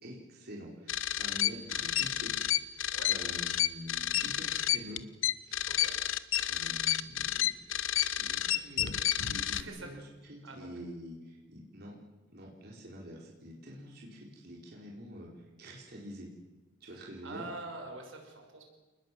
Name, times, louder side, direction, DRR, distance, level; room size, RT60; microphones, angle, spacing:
voice 1, 0.0-2.4 2.6-5.0 5.4-5.6 6.4-7.7 8.2-12.0 12.3-15.3 15.6-16.3 16.8-17.4, equal, 50° right, -2 dB, 4.7 m, -46 dB
sound 1, 0.9-9.6, left 12 dB, 85° left, 1.0 m, -30 dB
voice 2, 5.6-6.0 9.5-10.0 10.4-10.7 16.8-18.6, right 2 dB, 80° right, 3 dB, 6.1 m, -45 dB
28.5 x 20.5 x 7.8 m, 1.2 s
head